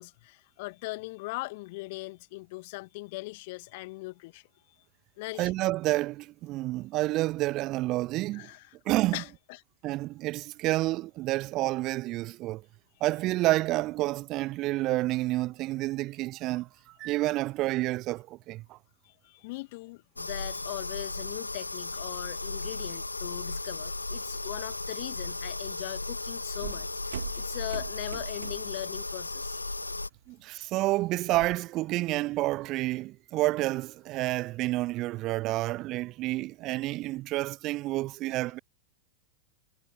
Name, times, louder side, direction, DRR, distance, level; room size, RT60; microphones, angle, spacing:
voice 1, 0.0-4.9 5.2-5.5 8.3-8.8 9.1-9.6 19.0-29.6, left 23 dB, 50° left, 2.5 m, -40 dB
voice 2, 5.4-8.5 8.9-9.2 9.8-12.6 13.0-18.8 30.3-38.6, right 18 dB, 40° right, 0.4 m, -29 dB
sound 1, 20.2-30.1, left 2 dB, 80° left, 2.2 m, -36 dB
sound 2, 26.6-28.8 29.2-29.5 29.9-31.6, right 11 dB, 60° right, 4.2 m, -42 dB
figure-of-eight pair, 90°, 0 cm